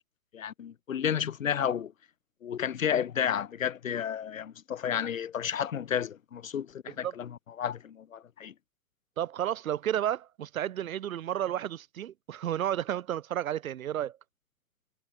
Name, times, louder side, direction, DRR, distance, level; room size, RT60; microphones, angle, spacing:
voice 1, 0.3-1.9 2.4-8.5, left 8 dB, 65° left, 2.5 m, -32 dB
voice 2, 9.2-14.2, right 11 dB, 70° right, 0.7 m, -32 dB
hypercardioid pair, 175°, 43 cm